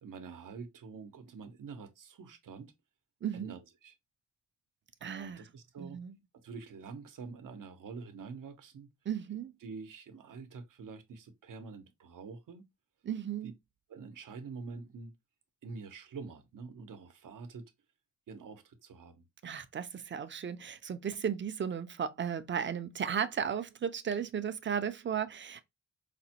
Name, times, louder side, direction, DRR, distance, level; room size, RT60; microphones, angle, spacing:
voice 1, 0.0-2.7 3.3-3.9 5.0-6.0 6.4-8.9 9.6-12.7 13.4-13.5 13.9-15.1 15.6-17.7 18.3-19.2, right 4 dB, 85° right, 0.8 m, -46 dB
voice 2, 3.2-3.5 5.0-5.4 5.8-6.1 9.1-9.5 13.0-13.5 19.4-25.6, right 8 dB, 40° right, 0.4 m, -35 dB
5.0 x 2.1 x 2.8 m
wide cardioid pair, 125°, 32 cm